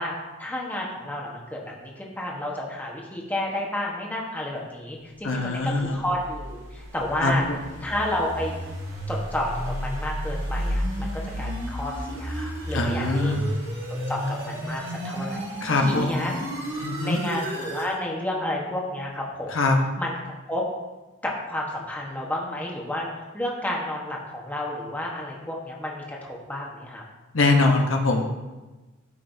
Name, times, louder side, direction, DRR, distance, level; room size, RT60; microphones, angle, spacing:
voice 1, 0.0-7.4 7.8-8.5 9.1-13.4 14.1-15.5 15.7-16.3 16.8-19.6 20.0-20.2 20.5-20.6 21.2-23.1 23.3-27.0, left 1 dB, 10° left, -2 dB, 1.2 m, -31 dB
voice 2, 5.2-6.0 7.2-7.6 12.7-13.5 15.6-16.4 16.8-17.2 19.5-19.8 27.3-28.3, left 2 dB, 75° left, 2 dB, 1.0 m, -23 dB
sound 1, 5.7-17.9, equal, 55° right, 2.4 m, -32 dB
13.0 x 5.5 x 2.7 m, 1.2 s
head